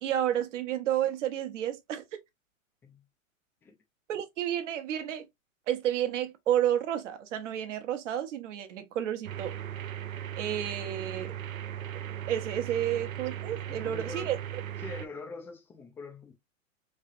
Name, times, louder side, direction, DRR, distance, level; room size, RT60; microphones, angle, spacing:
voice 1, 0.0-2.2 4.1-5.3 5.7-9.6 10.4-11.3 12.3-14.4, right 11 dB, 60° right, 1.0 m, -31 dB
sound 1, 9.2-15.1, right 10 dB, 80° right, 0.7 m, -38 dB
voice 2, 13.7-14.3 14.8-16.3, left 4 dB, 5° left, 0.3 m, -44 dB
3.7 x 3.2 x 2.5 m
hypercardioid pair, 110°, 40 cm